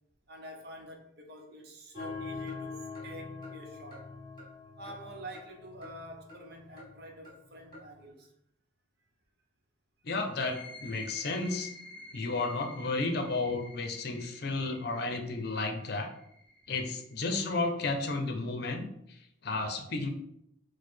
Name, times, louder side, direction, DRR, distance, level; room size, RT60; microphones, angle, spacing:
voice 1, 0.3-4.1 4.8-8.3 12.1-12.2, right 1 dB, 55° right, 0.8 m, -47 dB
sound 1, 1.9-8.0, left 4 dB, 25° left, 1.2 m, -44 dB
voice 2, 10.0-11.7 12.1-16.1 16.7-20.1, left 3 dB, 55° left, 0.6 m, -33 dB
sound 2, 10.2-17.7, left 2 dB, 5° left, 0.5 m, -50 dB
4.6 x 2.2 x 4.4 m
head